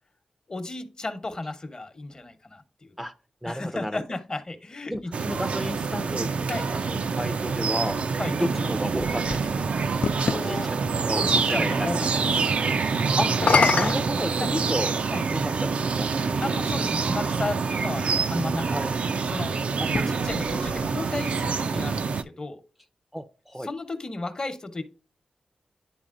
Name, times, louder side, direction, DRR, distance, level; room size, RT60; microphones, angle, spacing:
voice 1, 0.5-2.9 3.4-5.1 6.5-6.7 8.2-8.3 10.2-10.7 11.1-12.1 12.3-12.5 13.4-13.7 14.4-14.5 15.1-15.2 16.4-18.8 19.3-19.5 19.9-22.6 23.6-24.8, left 2 dB, 35° left, 9 dB, 1.0 m, -34 dB
voice 2, 3.4-4.0 4.9-6.3 6.7-8.0 8.3-9.5 10.3-10.8 11.1-11.9 12.1-12.2 13.2-13.3 13.8-14.9 15.3-16.1 18.7-18.9 19.8-19.9 23.1-23.7, equal, 5° right, 9 dB, 0.5 m, -31 dB
sound 1, 5.1-22.2, right 5 dB, 70° right, 0.5 m, -26 dB
sound 2, 9.0-10.5 13.3-15.0 16.0-16.1 19.8-21.3, left 5 dB, 60° left, 0.3 m, -27 dB
10.5 x 4.0 x 2.5 m, 0.37 s
cardioid pair, 80°, 2 cm